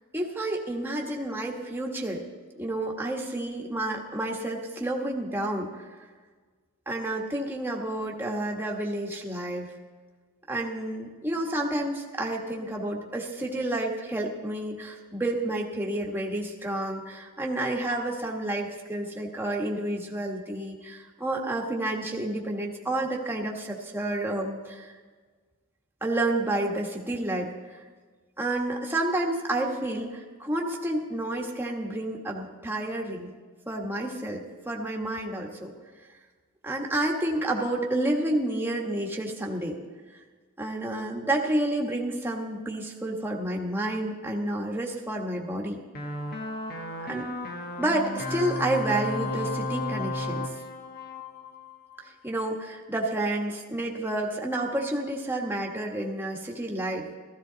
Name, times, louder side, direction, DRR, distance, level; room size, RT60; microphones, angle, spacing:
voice 1, 0.1-2.2 2.6-5.8 6.9-9.7 10.5-24.9 26.0-27.8 28.4-33.3 33.7-35.7 36.6-39.8 40.6-45.8 47.1-47.3 47.8-50.5 52.0-57.1, right 1 dB, 10° right, -1 dB, 1.4 m, -30 dB
sound 1, 46.0-52.1, left 2 dB, 45° left, 1.2 m, -33 dB
15.0 x 14.5 x 4.0 m, 1.4 s
head